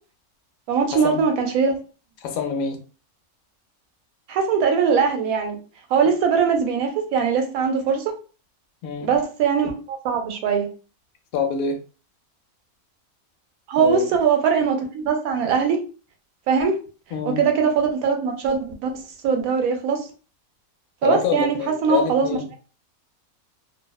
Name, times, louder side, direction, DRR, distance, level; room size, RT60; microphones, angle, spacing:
voice 1, 0.7-1.8 4.3-5.6 5.9-8.1 9.0-10.7 13.7-15.8 16.5-16.8 17.2-18.9 19.2-20.1 21.0-21.6 21.8-22.3, right 6 dB, 80° right, 4 dB, 1.0 m, -21 dB
voice 2, 2.2-2.8 8.8-9.1 11.3-11.8 13.8-14.1 17.1-17.4 21.0-22.4, left 6 dB, 70° left, 4 dB, 0.9 m, -26 dB
2.6 x 2.1 x 2.2 m, 0.35 s
omnidirectional pair, 1.5 m